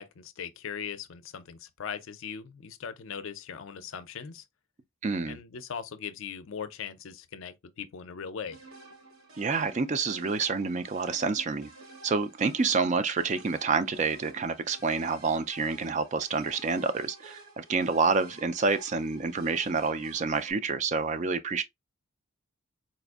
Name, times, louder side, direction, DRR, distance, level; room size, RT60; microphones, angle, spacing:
voice 1, 0.0-4.4 5.3-8.6, left 7 dB, 70° left, 0.5 m, -39 dB
voice 2, 5.0-5.4 9.4-11.7 12.0-21.6, right 4 dB, 35° right, 0.3 m, -28 dB
sound 1, 8.5-20.5, right 2 dB, 85° right, 1.1 m, -51 dB
4.1 x 2.5 x 2.3 m
head